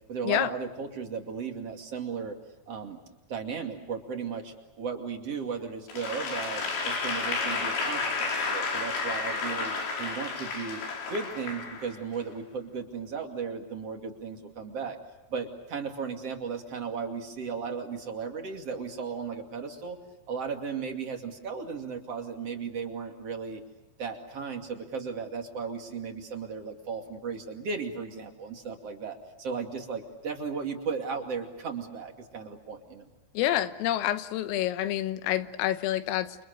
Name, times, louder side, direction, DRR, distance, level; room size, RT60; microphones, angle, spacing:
voice 1, 0.1-2.4 2.7-3.0 3.3-10.8 11.1-15.0 15.3-20.0 20.3-23.6 24.0-33.1, right 5 dB, 40° right, 2.6 m, -35 dB
Applause / Crowd, 5.9-12.2, left 4 dB, 75° left, 7.3 m, -31 dB
voice 2, 33.4-36.4, left 13 dB, 90° left, 3.9 m, -28 dB
29.5 x 27.5 x 6.7 m
omnidirectional pair, 5.8 m